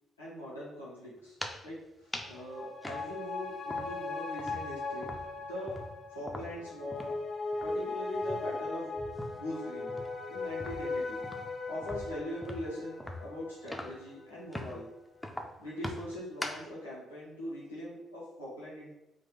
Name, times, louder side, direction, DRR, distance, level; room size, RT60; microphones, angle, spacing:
voice 1, 0.2-1.4 1.6-5.8 6.1-7.2 7.6-8.9 9.3-10.0 10.3-11.2 11.7-14.9 15.6-18.9, left 1 dB, 90° left, -8 dB, 0.9 m, -41 dB
sound 1, 1.2-1.7 2.1-2.4 2.8-4.1 4.4-7.2 7.5-7.7 8.1-9.5 9.9-14.1 14.5-14.8 15.2-16.7, left 1 dB, 10° left, 0.6 m, -42 dB
sound 2, 2.2-15.1 15.4-15.5, left 3 dB, 55° left, 0.7 m, -39 dB
3.8 x 2.5 x 4.0 m, 0.88 s
figure-of-eight pair, 45°, 0 cm